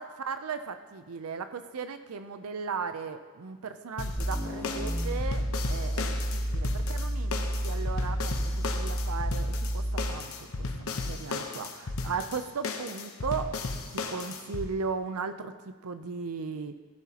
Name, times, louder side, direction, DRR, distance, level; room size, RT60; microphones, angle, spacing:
voice 1, 0.0-13.6 13.9-16.8, right 5 dB, 85° right, 9 dB, 0.6 m, -37 dB
sound 1, 4.0-14.7, left 3 dB, 75° left, 0.9 m, -35 dB
sound 2, 4.1-10.3, equal, 15° left, 2.0 m, -31 dB
16.5 x 11.0 x 2.9 m, 1.5 s
head